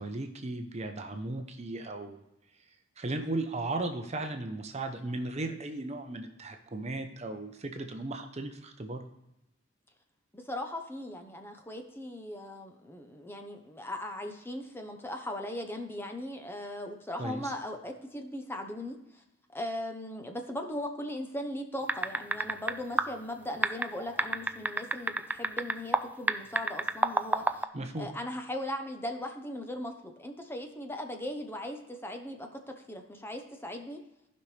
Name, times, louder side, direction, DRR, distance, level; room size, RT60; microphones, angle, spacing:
voice 1, 0.0-2.2 3.0-9.0 17.2-17.5 27.7-28.1, right 2 dB, 35° right, 6 dB, 0.7 m, -36 dB
voice 2, 10.3-19.2 19.5-27.7 28.0-34.0, left 1 dB, 10° left, 4 dB, 0.8 m, -38 dB
sound 1, 21.9-22.7 23.0-23.1 23.6-26.0 26.3-27.6, right 2 dB, 10° right, 0.3 m, -27 dB
15.0 x 5.4 x 3.3 m, 0.89 s
head